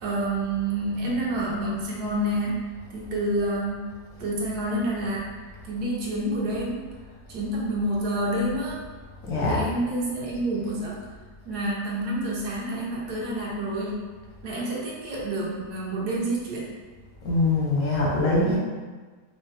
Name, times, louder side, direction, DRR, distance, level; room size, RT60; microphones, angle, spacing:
voice 1, 0.0-3.9 4.2-5.4 5.6-6.9 7.3-8.8 9.4-11.0 11.4-14.0 14.4-16.7 18.4-18.6, right 1 dB, 70° right, -4 dB, 1.3 m, -28 dB
voice 2, 9.2-9.6 17.2-18.6, left 2 dB, 90° left, -3 dB, 1.6 m, -23 dB
4.8 x 2.1 x 3.2 m, 1.4 s
omnidirectional pair, 1.8 m